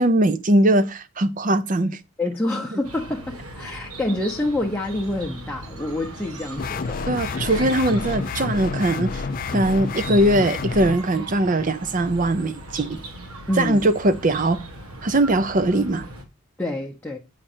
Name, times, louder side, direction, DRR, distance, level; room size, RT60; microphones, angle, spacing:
voice 1, 0.0-2.0 7.1-9.2 9.5-13.0 13.6-14.6 15.0-16.1, right 1 dB, 35° right, 0.5 m, -20 dB
voice 2, 2.2-7.4 13.5-13.9 16.6-17.2, left 1 dB, 10° left, 0.7 m, -27 dB
Chirp tweet, 2.8-16.2, right 1 dB, 85° right, 1.5 m, -39 dB
sound 1, 6.6-11.0, left 4 dB, 40° left, 0.4 m, -28 dB
8.8 x 5.0 x 4.3 m
head